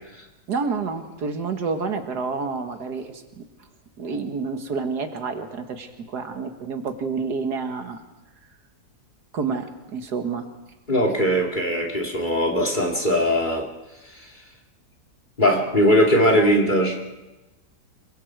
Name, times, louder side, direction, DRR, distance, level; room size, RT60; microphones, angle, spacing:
voice 1, 0.5-3.4 4.0-8.0 9.3-10.5, right 4 dB, 75° right, 6 dB, 2.1 m, -29 dB
voice 2, 10.9-13.6 15.4-17.0, equal, 30° left, 1 dB, 2.6 m, -20 dB
26.0 x 23.5 x 4.7 m, 1.1 s
omnidirectional pair, 1.7 m